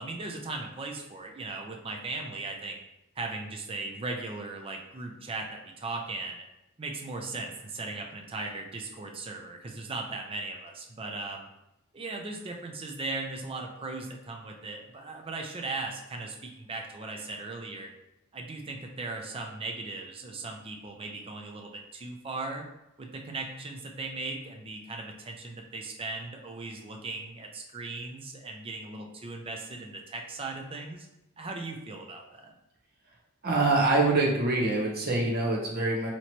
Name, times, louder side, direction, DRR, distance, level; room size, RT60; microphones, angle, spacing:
voice 1, 0.0-2.8 3.2-6.5 6.8-11.5 11.9-17.9 18.3-22.7 23.0-31.1 31.4-32.5, right 3 dB, 25° right, 2 dB, 0.5 m, -38 dB
voice 2, 33.4-36.1, right 2 dB, 45° right, -1 dB, 0.8 m, -25 dB
3.0 x 2.9 x 4.3 m, 0.90 s
head